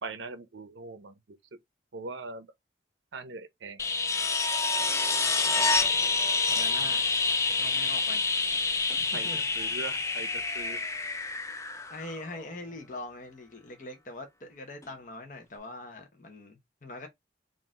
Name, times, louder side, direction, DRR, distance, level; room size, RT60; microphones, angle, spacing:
voice 1, 0.0-1.4 1.9-2.5 3.1-3.8 6.8-6.9 9.1-10.8, right 3 dB, 85° right, 0.7 m, -41 dB
sound 1, 3.8-12.5 14.8-14.9, left 4 dB, 15° left, 0.4 m, -28 dB
voice 2, 5.3-5.7 6.5-7.1 7.6-8.3 8.9-9.4 11.9-17.1, left 2 dB, 45° left, 1.0 m, -43 dB
3.9 x 2.6 x 3.6 m
head